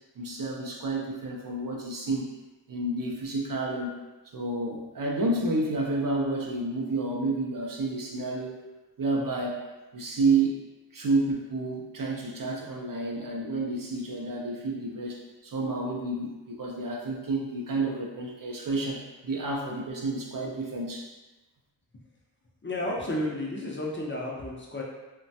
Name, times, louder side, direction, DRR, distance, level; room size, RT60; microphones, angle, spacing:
voice 1, 0.2-2.2 2.7-4.0 4.3-8.6 9.0-9.6 9.9-10.6 10.9-21.1, right 2 dB, 50° right, -1 dB, 0.5 m, -30 dB
voice 2, 22.6-24.8, left 1 dB, 30° left, -4 dB, 0.4 m, -32 dB
3.0 x 2.2 x 2.6 m, 1.1 s
wide cardioid pair, 100°, 44 cm